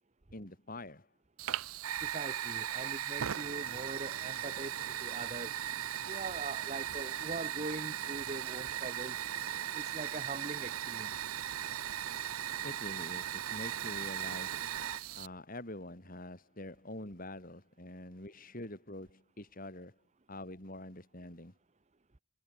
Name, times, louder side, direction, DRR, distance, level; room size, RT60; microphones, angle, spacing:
voice 1, 0.3-1.1 12.6-14.6 15.1-20.0 20.3-21.5, left 1 dB, 40° left, 4.1 m, -46 dB
Fire, 1.4-15.3, right 10 dB, 85° right, 0.6 m, -38 dB
voice 2, 2.0-5.6 6.1-9.2 9.7-11.2, right 2 dB, 30° right, 1.0 m, -42 dB
head